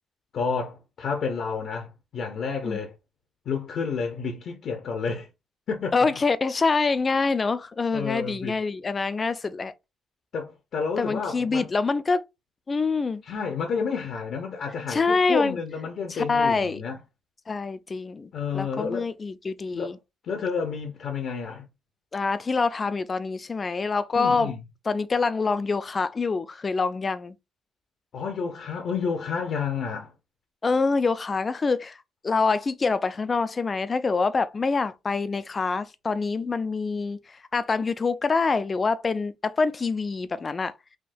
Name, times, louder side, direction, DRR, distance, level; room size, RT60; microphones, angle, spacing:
voice 1, 0.3-2.9 3.5-5.3 5.7-6.0 7.9-8.6 10.3-11.7 13.2-17.0 18.3-19.1 19.7-19.9 20.2-21.7 24.1-24.6 28.1-30.1, left 5 dB, 65° left, 0.6 m, -30 dB
voice 2, 5.9-9.7 11.0-12.2 12.7-13.2 14.9-15.6 16.1-16.8 17.5-20.0 22.1-24.5 24.9-27.3 30.6-32.0 32.2-37.2 37.5-40.7, left 4 dB, 35° left, 0.3 m, -25 dB
3.5 x 2.2 x 2.6 m
cardioid pair, 90°, 0 cm